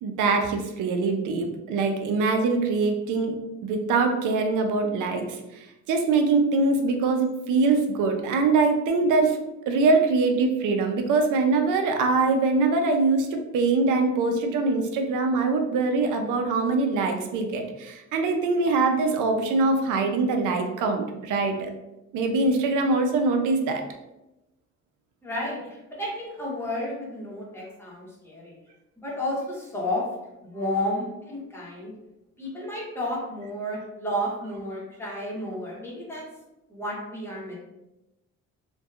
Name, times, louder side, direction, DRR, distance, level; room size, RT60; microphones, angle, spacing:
voice 1, 0.0-3.4 3.6-9.4 9.7-21.7 22.1-23.8, right 3 dB, 85° right, 5 dB, 0.5 m, -23 dB
voice 2, 25.2-28.6 29.0-30.1 30.4-31.9 32.4-36.2 36.7-37.5, left 1 dB, 10° left, -5 dB, 0.9 m, -32 dB
2.6 x 2.2 x 2.3 m, 0.96 s
cardioid pair, 90°, 30 cm